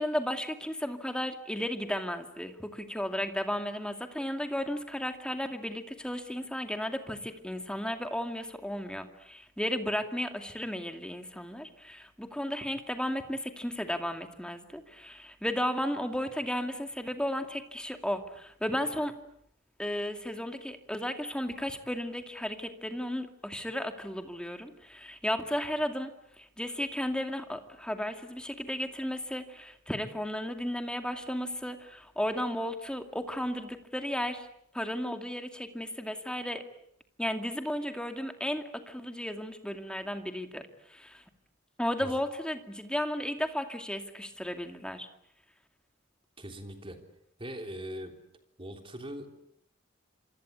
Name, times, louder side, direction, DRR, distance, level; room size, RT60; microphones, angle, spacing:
voice 1, 0.0-19.2 19.8-34.5 34.7-36.6 37.2-40.6 40.9-41.2 41.8-45.1, equal, 5° left, 6 dB, 2.4 m, -34 dB
voice 2, 46.4-47.0 47.4-48.1 48.6-49.3, equal, 25° right, 5 dB, 3.5 m, -41 dB
27.5 x 24.5 x 8.3 m, 0.72 s
head